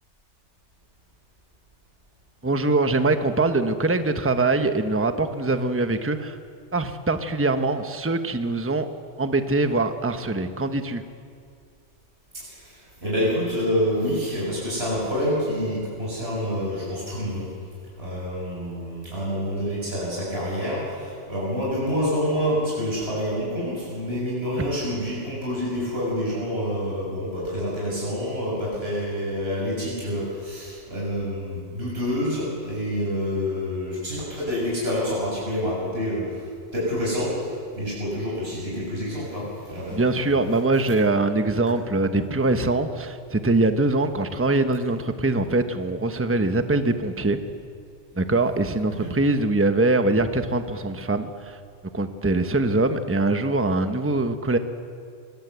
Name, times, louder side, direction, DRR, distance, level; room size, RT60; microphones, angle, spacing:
voice 1, 2.4-6.4 6.7-8.9 9.2-11.0 24.5-24.7 39.9-47.4 48.2-51.6 51.9-54.6, right 2 dB, 10° right, 8 dB, 1.0 m, -23 dB
voice 2, 12.3-17.5 18.0-36.4 36.7-40.2 48.9-49.1, equal, 55° right, -6 dB, 7.2 m, -27 dB
25.0 x 19.0 x 8.1 m, 2.2 s
omnidirectional pair, 1.2 m